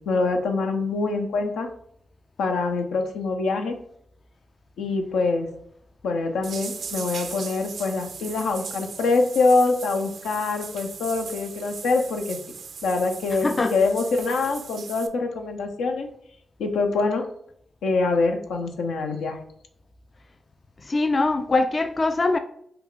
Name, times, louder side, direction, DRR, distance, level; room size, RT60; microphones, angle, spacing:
voice 1, 0.0-1.7 2.4-3.8 4.8-5.5 6.0-12.4 12.8-16.1 16.6-17.3 17.8-19.4, left 3 dB, 85° left, 0.6 m, -24 dB
sound 1, 6.4-15.1, right 5 dB, 70° right, 0.5 m, -38 dB
voice 2, 13.4-13.7 20.8-22.4, left 3 dB, 40° left, 0.4 m, -22 dB
5.7 x 2.4 x 3.7 m
supercardioid pair, 45°, 0 cm